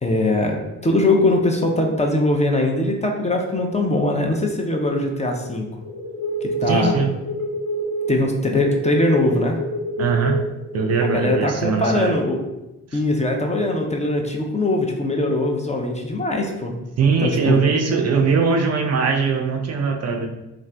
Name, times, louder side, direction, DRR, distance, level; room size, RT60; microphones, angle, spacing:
voice 1, 0.0-5.7 6.4-7.0 8.1-9.6 11.0-12.4 12.9-16.8 17.2-17.6, left 2 dB, 20° left, 2 dB, 0.5 m, -21 dB
sound 1, 4.1-11.4, right 2 dB, 50° left, 1.0 m, -28 dB
voice 2, 6.7-7.1 10.0-10.4 10.7-12.2 12.9-13.0 17.0-20.3, right 5 dB, 45° right, 3 dB, 0.4 m, -20 dB
2.4 x 2.4 x 3.3 m, 0.96 s
hypercardioid pair, 40°, 37 cm